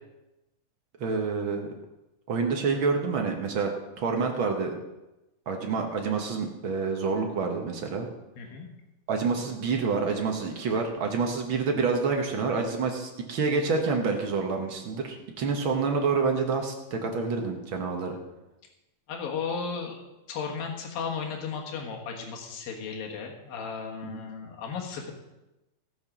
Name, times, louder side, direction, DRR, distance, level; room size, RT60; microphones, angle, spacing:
voice 1, 1.0-1.7 2.3-4.7 5.5-8.1 9.1-18.2 24.0-24.2, right 4 dB, 60° right, 3 dB, 1.3 m, -28 dB
voice 2, 8.4-8.7 19.1-20.0 20.3-25.1, left 5 dB, 85° left, 1 dB, 3.3 m, -35 dB
17.0 x 6.3 x 6.1 m, 0.99 s
omnidirectional pair, 3.9 m